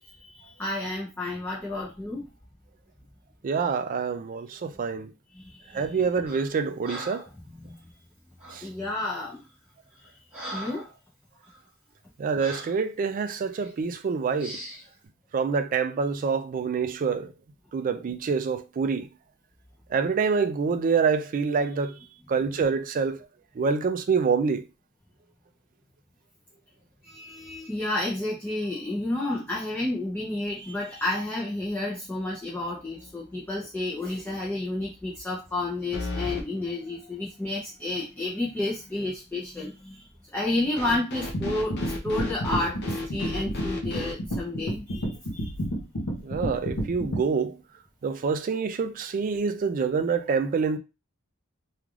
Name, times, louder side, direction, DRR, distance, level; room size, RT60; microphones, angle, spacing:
voice 1, 0.1-2.2 5.3-5.8 7.5-7.8 8.6-9.4 10.5-10.9 27.0-40.0 40.3-45.5, left 2 dB, 10° left, 0.5 m, -31 dB
voice 2, 3.4-5.1 5.7-7.2 8.5-8.7 12.2-14.6 15.3-17.3 17.7-19.1 19.9-22.0 22.3-23.3 23.6-24.7 46.2-47.6 48.0-50.8, right 5 dB, 40° right, 0.3 m, -26 dB
Breathing, 6.3-6.5 6.8-7.4 8.4-8.7 9.3-9.5 9.9-11.0 11.4-11.6 12.4-12.8 13.5-13.7 14.4-14.9, right 1 dB, 10° right, 1.2 m, -40 dB
sound 1, 32.8-33.3 33.6-33.7 35.9-36.5 40.8-44.2, left 2 dB, 55° left, 0.7 m, -34 dB
sound 2, 41.3-47.2, equal, 85° left, 0.9 m, -30 dB
3.2 x 2.4 x 2.4 m
head